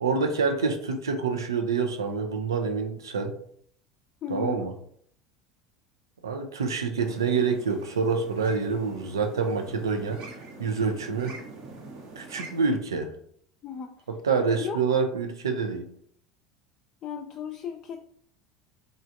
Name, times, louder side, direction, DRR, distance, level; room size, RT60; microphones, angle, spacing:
voice 1, 0.0-3.3 4.3-4.7 6.2-10.2 10.6-11.4 12.2-13.1 14.2-15.9, right 5 dB, 75° right, 5 dB, 0.5 m, -27 dB
voice 2, 4.2-4.7 13.6-13.9 14.6-14.8 17.0-18.0, left 7 dB, 35° left, 3 dB, 0.4 m, -35 dB
sound 1, 7.0-12.7, right 3 dB, 55° right, 0.9 m, -44 dB
3.7 x 3.2 x 2.6 m, 0.63 s
figure-of-eight pair, 70°, 2 cm